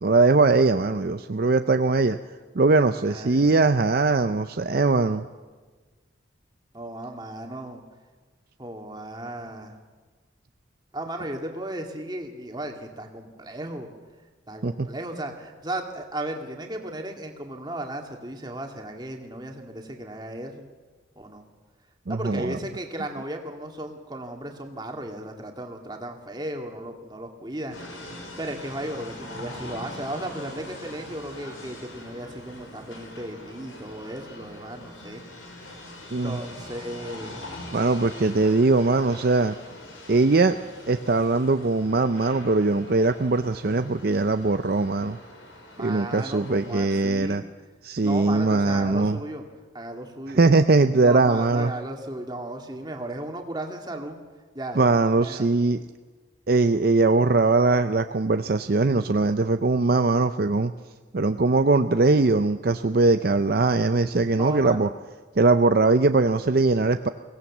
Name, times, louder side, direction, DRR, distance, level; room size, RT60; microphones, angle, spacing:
voice 1, 0.0-2.2 2.5-5.2 14.6-14.9 22.1-22.6 36.1-36.3 37.7-39.5 40.1-40.6 40.9-45.2 45.8-47.4 47.8-49.2 50.3-51.7 54.8-55.8 56.5-60.7 61.1-64.9 65.4-67.1, right 3 dB, 50° right, 9 dB, 0.5 m, -21 dB
voice 2, 3.1-3.6 6.7-7.8 8.6-9.8 10.9-13.9 14.5-20.7 21.2-21.4 22.1-35.2 36.2-37.4 45.8-47.4 48.0-49.4 49.7-50.4 51.0-54.2 54.5-54.8 55.2-55.5 64.4-64.9, right 1 dB, 20° right, 3 dB, 2.1 m, -35 dB
sound 1, 27.7-47.1, left 1 dB, 85° left, 4.6 m, -43 dB
23.0 x 17.5 x 7.3 m, 1.4 s
head